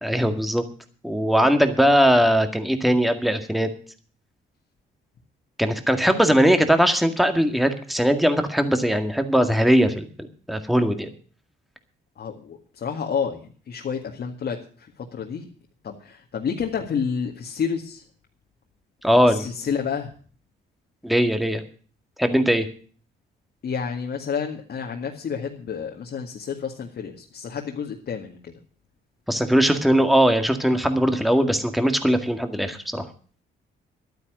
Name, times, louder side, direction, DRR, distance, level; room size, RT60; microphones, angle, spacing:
voice 1, 0.0-0.6 1.0-3.7 5.6-10.1 10.5-11.1 19.0-19.5 21.0-21.6 22.2-22.7 29.3-33.1, equal, ahead, 7 dB, 1.9 m, -20 dB
voice 2, 12.2-15.5 15.8-18.0 19.3-20.1 23.6-28.5, left 6 dB, 55° left, 1 dB, 2.1 m, -30 dB
12.0 x 9.7 x 7.7 m, 0.42 s
cardioid pair, 90°, 20 cm